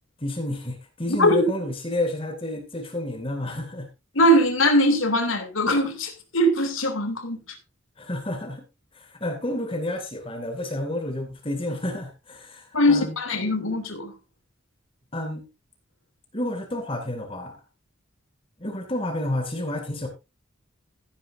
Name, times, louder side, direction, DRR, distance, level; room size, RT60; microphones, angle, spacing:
voice 1, 0.2-3.9 8.0-8.6 8.9-13.2 15.1-15.5 16.3-17.6 18.6-20.1, left 1 dB, 25° left, 2.4 m, -30 dB
voice 2, 4.1-7.4 12.7-14.1, equal, 80° left, 3.0 m, -21 dB
15.5 x 9.9 x 2.7 m
head